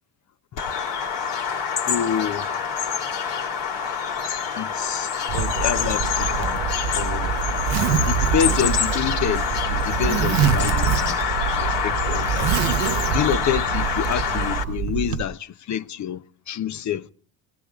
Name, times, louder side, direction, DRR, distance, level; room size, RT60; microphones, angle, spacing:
Bird vocalization bird call bird song, 0.6-14.6, left 7 dB, 65° left, 3.0 m, -26 dB
voice 1, 1.9-2.5 4.6-6.7 6.9-7.4 8.1-11.2 11.5-12.5 12.8-17.1, left 9 dB, 40° left, 0.9 m, -28 dB
Zipper (clothing), 5.3-15.2, right 8 dB, 70° right, 1.0 m, -25 dB
20.5 x 17.5 x 3.6 m
supercardioid pair, 85°, 45 cm